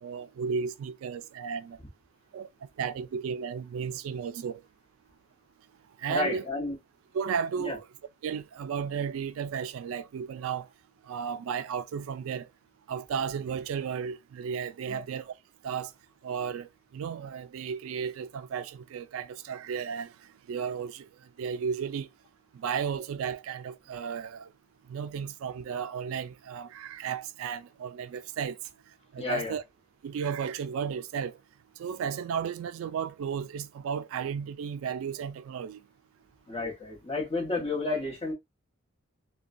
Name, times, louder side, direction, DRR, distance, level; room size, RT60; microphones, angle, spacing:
voice 1, 0.0-1.8 2.3-2.5 2.8-4.6 6.0-6.4 7.1-7.9 8.2-10.7 11.1-12.5 12.9-15.3 15.6-15.9 16.2-20.1 20.5-21.1 21.4-22.1 22.5-24.5 24.9-28.6 29.1-29.6 30.0-31.4 31.8-35.8, right 7 dB, 85° right, 0.3 m, -34 dB
voice 2, 6.1-6.8 7.6-7.8 14.9-15.0 29.2-29.6 36.5-38.3, left 2 dB, 30° left, 1.1 m, -31 dB
2.9 x 2.2 x 2.5 m
head